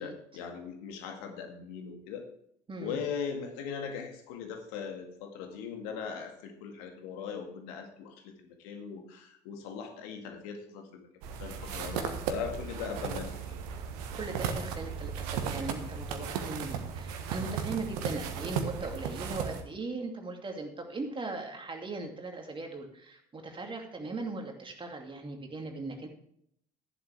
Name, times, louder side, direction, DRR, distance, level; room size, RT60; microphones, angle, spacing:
voice 1, 0.0-2.3 2.8-11.0 11.4-13.6, left 6 dB, 60° left, 4 dB, 2.1 m, -39 dB
sound 1, 11.2-19.6, right 7 dB, 60° right, 1.4 m, -36 dB
voice 2, 11.9-12.2 14.1-26.1, right 3 dB, 25° right, 3 dB, 2.7 m, -39 dB
13.5 x 11.5 x 3.5 m, 0.67 s
figure-of-eight pair, 60°, 21 cm